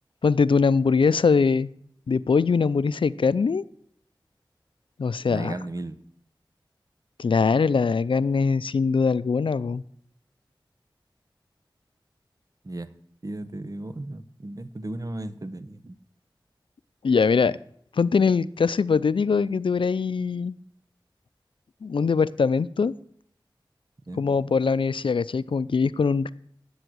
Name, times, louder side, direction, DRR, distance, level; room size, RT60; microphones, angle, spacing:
voice 1, 0.2-1.7 2.1-3.6 5.0-5.5 7.2-9.8 17.0-17.6 18.0-20.6 21.8-22.9 24.2-26.3, left 5 dB, 85° left, 18 dB, 0.4 m, -22 dB
voice 2, 5.3-6.0 12.6-12.9 13.2-15.9 24.1-24.2, right 1 dB, 45° right, 11 dB, 0.8 m, -35 dB
10.5 x 8.1 x 6.2 m, 0.68 s
wide cardioid pair, 50°, 8 cm